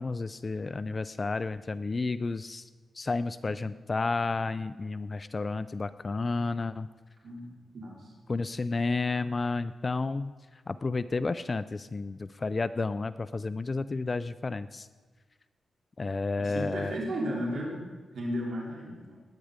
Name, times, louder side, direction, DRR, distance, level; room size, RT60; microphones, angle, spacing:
voice 1, 0.0-2.7 2.9-6.9 8.3-10.3 10.7-14.9 16.0-17.0, left 3 dB, 35° left, 14 dB, 0.4 m, -31 dB
voice 2, 7.7-8.1 16.4-17.8 18.1-19.2, equal, 65° right, -3 dB, 3.6 m, -34 dB
19.5 x 9.3 x 5.1 m, 1.3 s
cardioid pair, 95°, 0 cm